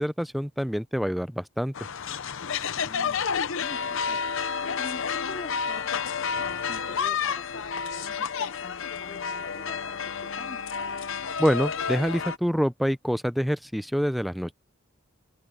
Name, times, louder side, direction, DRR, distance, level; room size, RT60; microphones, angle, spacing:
voice 1, 0.0-1.7 11.4-14.5, equal, ahead, 0.4 m, -26 dB
sound 1, 1.7-12.4, left 6 dB, 65° left, 0.8 m, -30 dB
voice 2, 2.8-4.3 4.7-5.9 6.4-10.6, left 2 dB, 35° left, 2.3 m, -45 dB
head